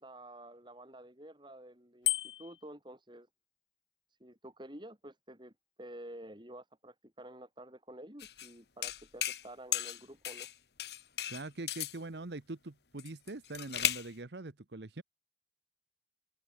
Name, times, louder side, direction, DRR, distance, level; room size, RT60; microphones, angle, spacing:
voice 1, 0.0-3.3 4.2-10.5, right 1 dB, 25° right, 7.4 m, -50 dB
Bicycle bell, 2.0-2.7, left 14 dB, 85° left, 1.3 m, -32 dB
sound 1, 8.2-8.5 8.8-9.5 9.7-10.5 10.8-12.0 13.0-14.1, left 11 dB, 60° left, 2.1 m, -35 dB
voice 2, 11.3-15.0, right 2 dB, 65° right, 1.1 m, -43 dB
head